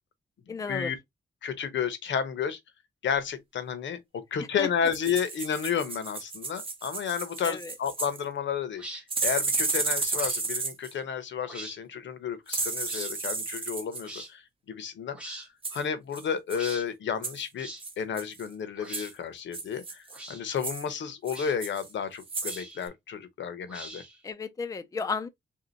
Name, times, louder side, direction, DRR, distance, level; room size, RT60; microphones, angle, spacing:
voice 1, 0.5-0.9 4.6-4.7 7.4-7.7 24.2-25.3, left 5 dB, 20° left, 0.4 m, -33 dB
voice 2, 1.4-2.6 3.0-8.8 9.2-14.4 14.7-15.4 15.7-17.7 18.0-20.0 20.3-24.0, left 7 dB, 80° left, 0.8 m, -32 dB
sound 1, 4.9-8.2 9.1-10.9 12.5-14.0 15.6-15.8 16.1-16.2 16.5-16.7 17.2-17.5 17.8-18.5 18.9-19.1 19.5-20.2 20.6-20.8 21.3-21.9 22.2-22.6 22.9-23.0, right 3 dB, 30° right, 1.0 m, -32 dB
sound 2, 8.7-9.0 10.1-10.4 11.4-11.8 12.9-13.1 14.0-14.3 15.1-15.5 16.5-16.9 17.6-17.8 18.8-19.1 20.1-20.4 21.3-21.6 22.4-22.9 23.7-24.2, right 1 dB, 5° right, 1.2 m, -42 dB
3.4 x 2.8 x 3.8 m
wide cardioid pair, 155°, 19 cm